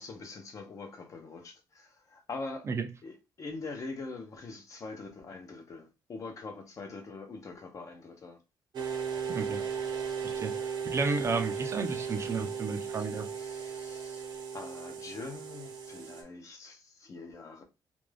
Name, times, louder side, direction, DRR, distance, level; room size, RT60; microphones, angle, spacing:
voice 1, 0.0-2.7 3.0-8.4 13.0-17.6, left 3 dB, 40° left, 0.7 m, -43 dB
sound 1, 8.7-16.2, right 6 dB, 65° right, 0.7 m, -36 dB
voice 2, 9.3-9.6 10.4-13.3, right 4 dB, 35° right, 0.4 m, -32 dB
2.5 x 2.2 x 3.2 m
cardioid pair, 135°, 8 cm